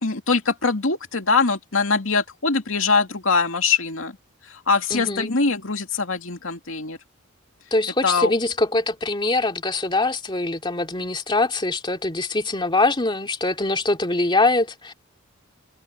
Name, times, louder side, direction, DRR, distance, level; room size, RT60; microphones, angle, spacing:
voice 1, 0.0-4.1 4.5-7.0 8.0-8.3, left 4 dB, 75° left, 2.5 m, -22 dB
voice 2, 4.9-5.3 7.7-14.9, left 2 dB, 25° left, 2.6 m, -23 dB
head